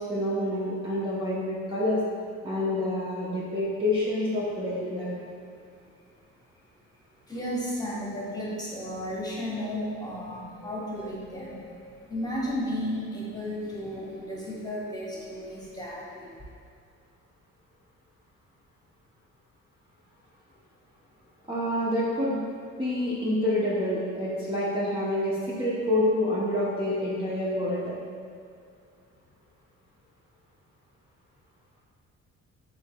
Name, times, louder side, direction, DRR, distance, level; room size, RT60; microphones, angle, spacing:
voice 1, 0.0-2.0 2.4-5.1 21.5-22.4 22.8-27.9, left 1 dB, 15° right, -8 dB, 0.7 m, -27 dB
voice 2, 7.3-16.3, equal, 15° left, -6 dB, 1.1 m, -34 dB
4.7 x 3.9 x 2.2 m, 2.3 s
cardioid pair, 90°, 30 cm